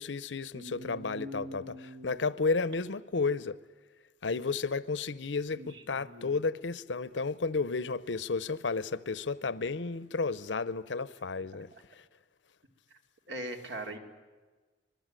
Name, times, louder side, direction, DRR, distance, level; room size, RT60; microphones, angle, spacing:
voice 1, 0.0-3.6 4.2-11.7, left 4 dB, 90° left, 0.8 m, -32 dB
voice 2, 0.5-2.1 5.6-6.3 11.7-11.8 13.3-14.0, right 1 dB, 85° right, 3.3 m, -42 dB
25.0 x 22.0 x 9.0 m
head